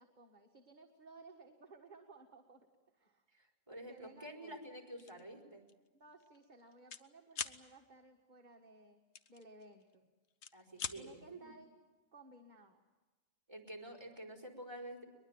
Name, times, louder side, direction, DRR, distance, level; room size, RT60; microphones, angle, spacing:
voice 1, 0.0-2.7 2.9-3.2 3.9-4.7 5.9-9.0 9.3-10.1 10.9-11.7 12.1-12.8, right 2 dB, 35° right, 3 dB, 1.8 m, -59 dB
voice 2, 3.3-5.6 10.5-11.5 13.5-15.1, right 1 dB, 20° right, 2 dB, 4.5 m, -49 dB
sound 1, 5.0-5.2 5.7-5.9 6.1-7.0 7.3-7.6 9.1-9.9 10.3-11.0, left 7 dB, 65° left, 1.2 m, -43 dB
22.5 x 22.0 x 9.0 m, 1.3 s
omnidirectional pair, 1.3 m